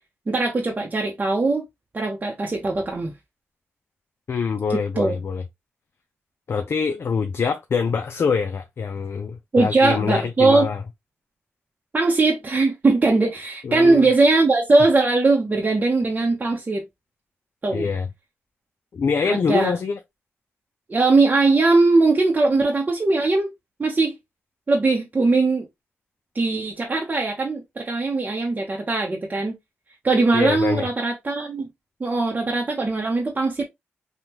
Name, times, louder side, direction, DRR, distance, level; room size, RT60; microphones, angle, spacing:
voice 1, 0.3-1.6 1.9-3.1 5.0-5.1 9.5-10.7 11.9-16.8 17.6-17.9 19.2-19.7 20.9-23.5 23.8-24.1 24.7-25.7 26.3-29.5 30.0-31.7 32.0-33.6, right 3 dB, 35° right, 0.8 m, -20 dB
voice 2, 4.3-5.4 6.5-10.8 13.6-14.1 17.7-18.1 18.9-20.0 30.3-30.9, left 5 dB, 60° left, 0.5 m, -24 dB
3.5 x 2.3 x 2.8 m
cardioid pair, 75°, 5 cm